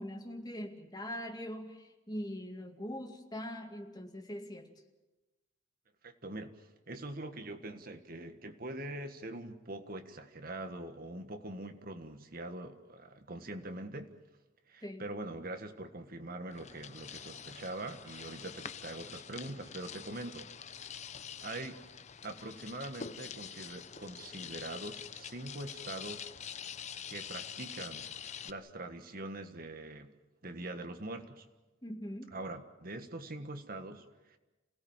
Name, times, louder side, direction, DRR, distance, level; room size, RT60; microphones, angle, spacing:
voice 1, 0.0-4.7 14.8-15.0 31.8-32.4, equal, 20° left, 3 dB, 2.2 m, -42 dB
voice 2, 6.0-14.1 14.7-20.5 21.4-21.8 22.2-26.3 27.1-30.1 30.4-31.4 32.3-34.4, right 2 dB, 50° right, 7 dB, 1.7 m, -43 dB
sound 1, 16.5-28.5, left 7 dB, 40° left, 0.7 m, -46 dB
28.0 x 17.5 x 7.4 m, 1.1 s
head